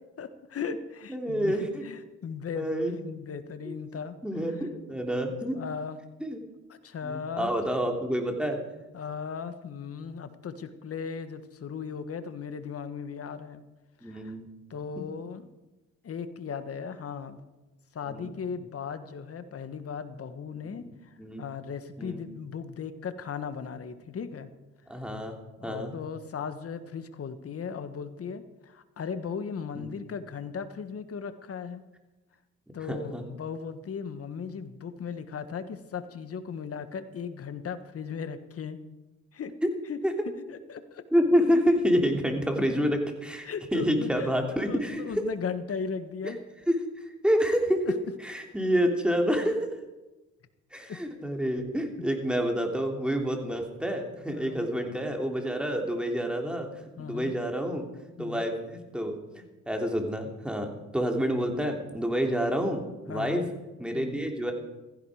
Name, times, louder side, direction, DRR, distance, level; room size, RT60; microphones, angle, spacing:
voice 1, 0.2-4.1 4.5-4.7 5.5-6.0 6.8-7.5 8.9-13.6 14.0-14.3 14.7-15.5 16.0-17.4 17.9-24.5 25.6-31.8 32.7-38.8 39.3-39.5 39.9-40.0 40.5-41.0 43.4-44.3 44.6-46.4 47.8-47.9 50.9-51.0 54.3-54.6 57.0-57.3 58.2-58.4 63.1-63.5 63.9-64.2, left 6 dB, 50° left, 10 dB, 1.5 m, -37 dB
voice 2, 1.1-1.8 2.5-2.9 3.7-3.8 4.2-5.6 6.2-6.4 7.0-8.6 14.0-14.5 18.1-18.3 20.6-20.9 21.2-21.4 22.0-22.2 24.9-25.3 25.6-25.9 29.7-29.9 32.9-33.2 39.6-39.7 40.0-40.1 41.1-45.0 46.2-46.3 46.7-46.8 47.2-48.0 48.2-49.7 50.7-56.7 57.0-57.8 58.2-62.8 63.1-63.4 63.8-64.5, equal, 5° right, 2 dB, 3.0 m, -28 dB
16.0 x 15.0 x 5.0 m, 1.1 s
cardioid pair, 90°, 30 cm